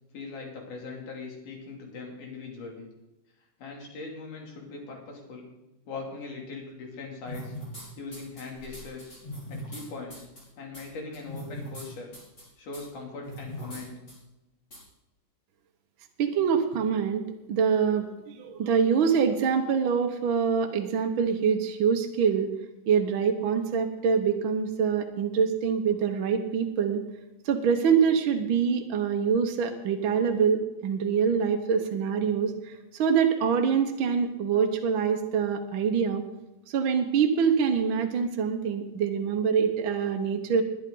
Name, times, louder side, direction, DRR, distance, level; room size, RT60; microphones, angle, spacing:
voice 1, 0.1-2.9 3.6-5.5 5.9-7.6 8.0-9.1 9.5-10.3 10.6-12.1 12.6-14.0, left 4 dB, 75° left, 0 dB, 4.3 m, -40 dB
sound 1, 7.3-7.8 8.1-9.8 10.1-10.4 10.7-10.8 11.1-11.8 12.1-12.4 12.7-12.8 13.2-13.8 14.1-14.2 14.7-14.8, equal, 30° left, 5.8 m, -40 dB
voice 2, 16.2-17.2 17.5-22.5 22.9-27.0 27.4-36.2 36.7-40.6, right 6 dB, 60° right, 4 dB, 1.3 m, -25 dB
21.0 x 9.8 x 3.9 m, 0.98 s
omnidirectional pair, 3.6 m